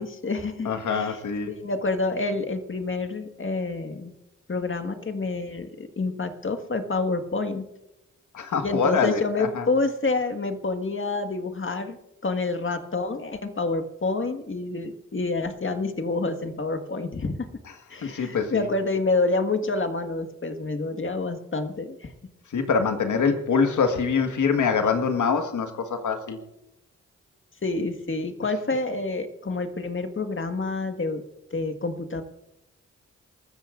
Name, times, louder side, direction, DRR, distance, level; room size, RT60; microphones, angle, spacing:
voice 1, 0.0-4.1 4.5-7.7 8.6-12.0 12.2-17.5 17.9-22.1 27.6-31.2 31.5-32.2, left 3 dB, 40° left, 7 dB, 1.7 m, -28 dB
voice 2, 0.7-1.5 8.3-9.6 18.0-18.7 22.5-26.4, left 5 dB, 70° left, 6 dB, 1.7 m, -24 dB
28.5 x 14.0 x 2.5 m, 0.91 s
supercardioid pair, 40°, 31 cm